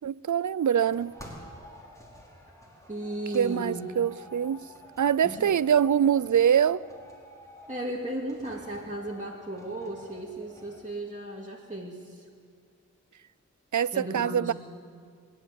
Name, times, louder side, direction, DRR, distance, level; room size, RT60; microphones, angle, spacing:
voice 1, 0.0-1.1 3.3-4.6 5.0-6.8 13.7-14.5, right 8 dB, 75° right, 20 dB, 0.5 m, -24 dB
sound 1, 0.7-10.8, left 1 dB, 10° left, 4.9 m, -50 dB
voice 2, 2.9-3.8 5.2-5.5 7.7-12.2 13.9-14.5, right 1 dB, 25° right, -4 dB, 2.7 m, -35 dB
25.5 x 11.0 x 9.5 m, 2.1 s
wide cardioid pair, 45°, 30 cm